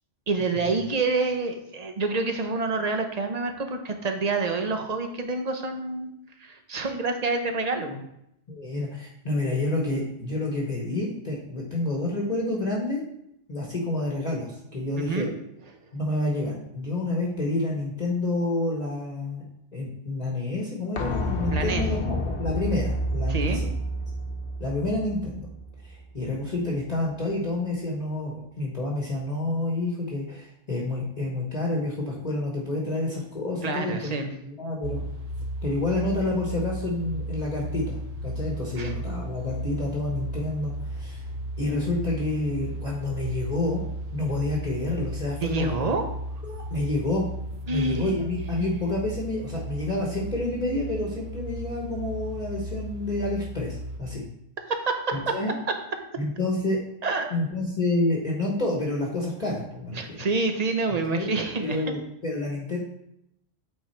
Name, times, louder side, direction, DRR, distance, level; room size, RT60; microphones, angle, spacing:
voice 1, 0.3-6.1 6.4-8.0 15.0-15.3 21.5-21.8 23.3-23.6 33.6-34.3 38.8-38.9 45.4-46.0 47.7-48.1 54.7-55.3 57.0-57.3 59.9-61.8, right 3 dB, 40° right, 5 dB, 0.8 m, -27 dB
voice 2, 8.5-13.0 13.5-15.3 15.9-19.4 19.7-23.6 24.6-25.5 25.8-34.1 34.4-35.0 35.6-41.2 41.6-43.8 44.1-45.8 46.4-47.2 47.7-54.2 55.1-55.5 56.2-56.8 57.3-60.0 61.1-61.3 61.6-62.8, left 2 dB, 35° left, -3 dB, 1.2 m, -29 dB
sound 1, 21.0-26.6 26.9-27.0, equal, 70° left, 1.2 m, -30 dB
sound 2, 34.8-54.0, equal, 65° right, 1.0 m, -35 dB
8.3 x 3.8 x 4.4 m, 0.79 s
omnidirectional pair, 1.2 m